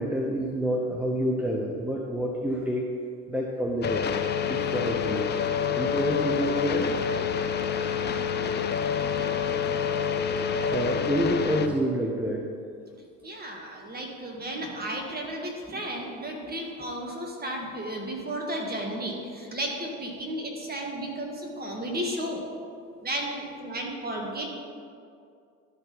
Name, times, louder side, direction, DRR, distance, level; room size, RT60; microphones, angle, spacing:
voice 1, 0.0-2.9 3.3-4.2 4.5-5.3 5.7-6.9 10.7-12.5 14.5-14.9 15.7-15.8, right 1 dB, 5° right, -1 dB, 0.8 m, -28 dB
sound 1, 3.8-11.7, left 7 dB, 30° left, 0.6 m, -27 dB
voice 2, 9.0-9.3 13.2-22.4 23.0-24.5, right 1 dB, 25° right, 0 dB, 1.9 m, -33 dB
12.5 x 4.3 x 4.1 m, 2.3 s
hypercardioid pair, 65°, 37 cm